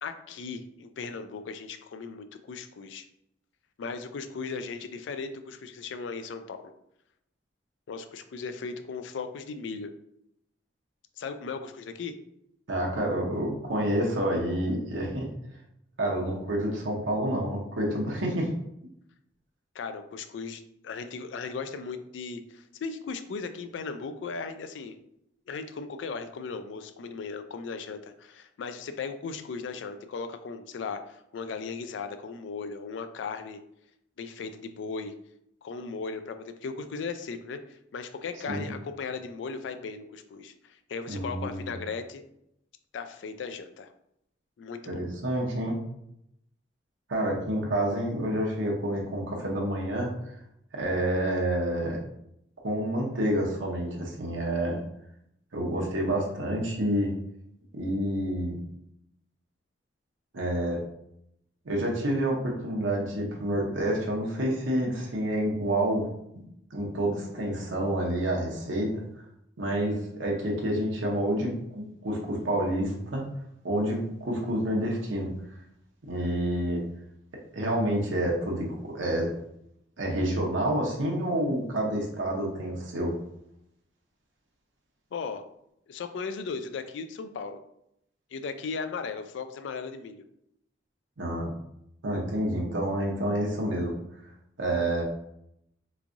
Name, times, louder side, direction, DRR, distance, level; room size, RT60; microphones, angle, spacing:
voice 1, 0.0-3.1 3.8-6.7 7.9-9.9 11.2-12.1 19.7-25.0 25.5-33.6 34.2-35.1 35.6-42.2 42.9-43.9 44.6-45.0 85.1-85.4 85.9-87.6 88.3-90.2, left 5 dB, 70° left, 9 dB, 0.3 m, -37 dB
voice 2, 12.7-15.3 16.0-18.5 38.5-38.7 41.1-41.7 44.9-45.8 47.1-50.1 50.7-52.0 52.6-54.8 55.5-57.1 57.7-58.6 60.3-60.8 61.6-66.1 66.7-69.0 69.6-73.2 73.6-75.3 76.0-76.8 77.5-79.3 80.0-83.1 91.2-91.5 92.0-94.0 94.6-95.0, right 1 dB, 85° right, -1 dB, 0.8 m, -28 dB
3.5 x 3.1 x 2.5 m, 0.77 s
head